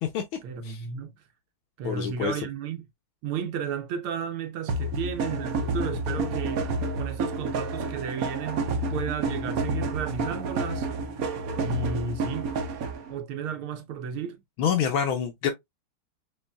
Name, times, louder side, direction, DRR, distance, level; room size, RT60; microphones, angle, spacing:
voice 1, 0.4-1.1 1.8-2.9 3.2-6.6 6.9-10.9 11.6-12.5 13.1-14.4, right 6 dB, 75° right, 1.5 m, -33 dB
voice 2, 1.8-2.4 14.6-15.5, left 8 dB, 75° left, 1.4 m, -26 dB
sound 1, 4.7-13.1, right 2 dB, 60° right, 0.9 m, -29 dB
6.2 x 3.1 x 2.2 m
omnidirectional pair, 2.4 m